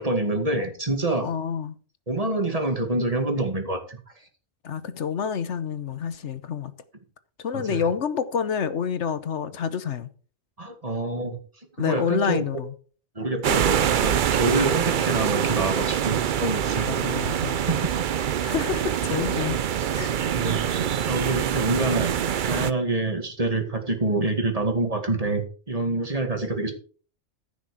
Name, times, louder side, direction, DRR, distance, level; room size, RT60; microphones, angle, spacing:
voice 1, 0.0-1.3 2.1-4.0 7.5-7.8 10.6-11.4 11.8-12.4 13.2-16.9 17.4-17.8 19.1-19.2 20.4-20.7 21.1-22.2 22.4-26.7, right 2 dB, 30° right, 2.3 m, -26 dB
voice 2, 1.2-1.8 4.6-6.7 7.4-10.1 11.8-12.7 14.7-14.8 16.8-17.6 18.4-19.6 20.0-20.3, left 7 dB, 75° left, 1.2 m, -28 dB
sound 1, 13.4-22.7, right 9 dB, 55° right, 0.6 m, -25 dB
14.5 x 6.3 x 4.8 m
omnidirectional pair, 1.2 m